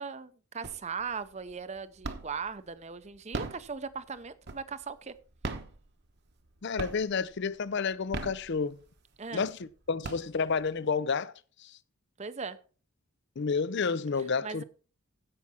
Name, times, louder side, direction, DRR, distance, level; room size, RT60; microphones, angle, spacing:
voice 1, 0.0-5.1 9.2-9.4 12.2-12.6 14.4-14.6, right 5 dB, 30° right, 0.6 m, -38 dB
sound 1, 0.6-1.1 1.5-2.5 3.1-4.9 5.3-6.5 6.8-7.3 7.9-9.0 9.5-9.6 9.8-10.7, right 3 dB, 50° right, 1.1 m, -38 dB
voice 2, 6.6-8.8 9.3-11.3 11.6-11.8 13.4-14.6, left 5 dB, 50° left, 0.5 m, -30 dB
15.5 x 5.9 x 4.3 m
head